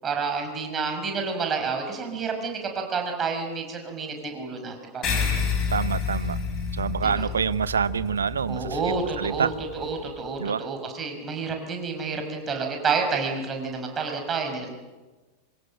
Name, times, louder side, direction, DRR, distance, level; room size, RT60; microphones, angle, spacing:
voice 1, 0.0-5.4 7.2-7.3 8.5-14.7, right 4 dB, 25° right, 4 dB, 5.7 m, -29 dB
sound 1, 5.0-9.9, left 5 dB, 35° left, 7.6 m, -29 dB
voice 2, 5.7-6.4 6.7-8.8 9.2-9.5 10.4-10.7, right 6 dB, 70° right, 17 dB, 0.9 m, -26 dB
26.0 x 25.0 x 7.6 m, 1.2 s
figure-of-eight pair, 90°, 0 cm